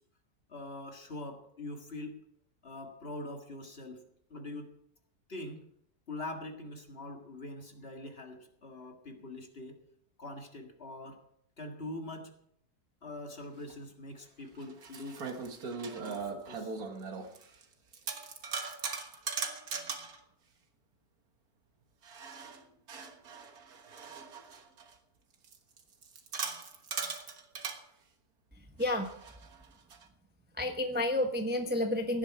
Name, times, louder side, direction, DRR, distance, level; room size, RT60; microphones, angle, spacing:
voice 1, 0.5-2.2 2.6-4.0 4.3-4.7 5.3-5.6 6.1-9.8 10.2-11.2 11.6-12.3 13.0-15.3 15.9-16.8, left 2 dB, 40° left, 3 dB, 2.1 m, -43 dB
sound 1, 13.7-13.8 14.6-17.6 17.9-20.2 22.0-24.9 25.4-27.8 28.8-30.0, right 5 dB, 70° right, 1.9 m, -40 dB
voice 2, 28.5-29.1 30.5-32.2, left 1 dB, 10° right, 4 dB, 0.9 m, -31 dB
17.0 x 11.0 x 4.7 m, 0.71 s
omnidirectional pair, 1.7 m